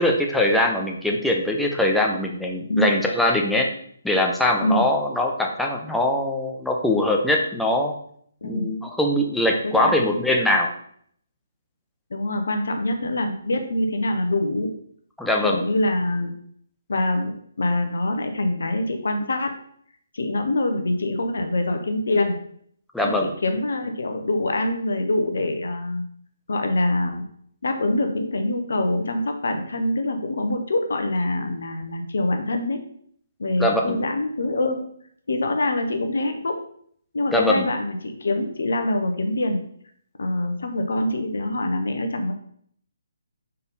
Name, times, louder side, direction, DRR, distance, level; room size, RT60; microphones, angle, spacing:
voice 1, 0.0-3.7 4.0-7.9 8.4-10.7 15.2-15.6 22.9-23.3 33.6-34.0 37.3-37.7, left 1 dB, 5° left, 0 dB, 0.9 m, -22 dB
voice 2, 9.6-10.0 12.1-14.7 15.4-16.3 16.9-19.5 20.1-22.4 23.0-26.0 26.5-27.2 27.6-32.8 33.4-34.8 35.3-36.6 37.1-39.6 40.2-42.3, left 1 dB, 70° left, 5 dB, 1.0 m, -24 dB
5.5 x 4.1 x 5.4 m, 0.63 s
figure-of-eight pair, 140°, 0 cm